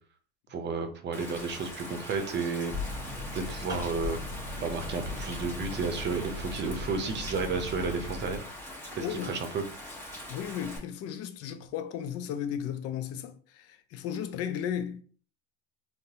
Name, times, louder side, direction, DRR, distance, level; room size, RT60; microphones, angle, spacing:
voice 1, 0.5-2.7 3.3-4.2 4.6-8.5 8.9-9.6, right 4 dB, 35° right, 0.7 m, -32 dB
Rain, 1.1-10.8, left 1 dB, 10° left, 1.3 m, -42 dB
sound 1, 2.7-8.4, left 2 dB, 15° right, 1.0 m, -38 dB
voice 2, 9.0-9.3 10.3-15.0, left 9 dB, 55° left, 0.5 m, -35 dB
3.9 x 2.1 x 2.8 m
supercardioid pair, 90°, 30 cm